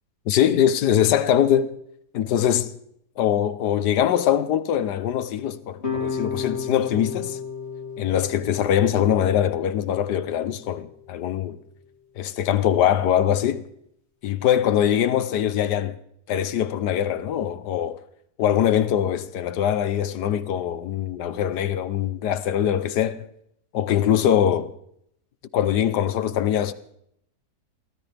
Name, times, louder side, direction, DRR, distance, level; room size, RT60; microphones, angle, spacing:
voice 1, 0.3-1.8 2.1-2.7 3.2-7.4 8.0-11.6 12.2-13.6 14.2-16.0 16.3-18.0 18.4-23.3 23.7-24.7 25.5-26.7, left 10 dB, 75° left, 1.4 m, -22 dB
sound 1, 5.8-10.9, left 6 dB, 40° left, 3.4 m, -33 dB
23.5 x 17.0 x 3.4 m
omnidirectional pair, 1.8 m